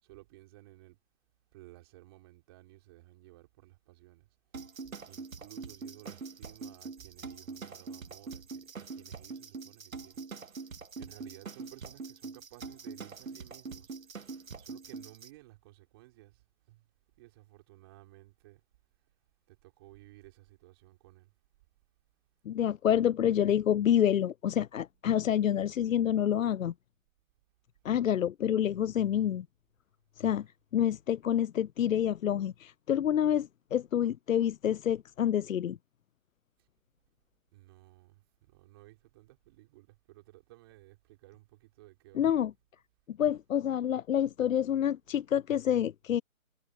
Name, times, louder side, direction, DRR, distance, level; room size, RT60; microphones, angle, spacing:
voice 1, 0.0-1.0 1.5-4.3 4.7-10.2 10.5-14.1 14.6-16.9 17.1-18.6 19.5-21.3 37.5-42.3, right 19 dB, 20° right, 3.9 m, -56 dB
sound 1, 4.5-15.3, right 4 dB, 75° right, 1.9 m, -44 dB
voice 2, 22.5-26.7 27.8-29.5 30.2-30.5 30.7-35.8 42.1-42.5 43.1-46.2, left 10 dB, 75° left, 0.5 m, -28 dB
hypercardioid pair, 165°, 41 cm